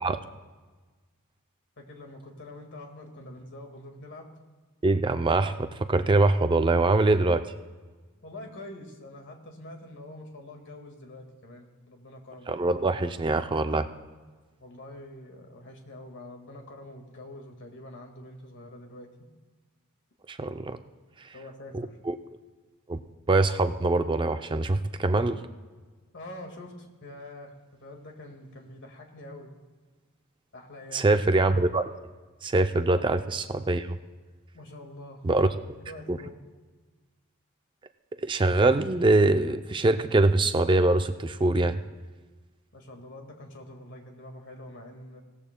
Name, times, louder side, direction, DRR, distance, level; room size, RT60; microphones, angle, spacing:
voice 1, 1.8-4.3 8.2-12.5 14.6-19.1 21.3-22.0 26.1-29.5 30.5-31.2 32.9-33.1 34.5-35.5 35.8-36.4 42.7-45.2, left 1 dB, 55° left, 3 dB, 1.8 m, -45 dB
voice 2, 4.8-7.4 12.5-13.9 20.3-20.8 21.7-22.1 22.9-23.0 23.3-25.4 30.9-31.9 32.4-33.9 35.2-35.5 36.1-36.2 38.2-41.8, right 2 dB, 20° right, 9 dB, 0.4 m, -23 dB
18.0 x 14.0 x 2.2 m, 1.3 s
head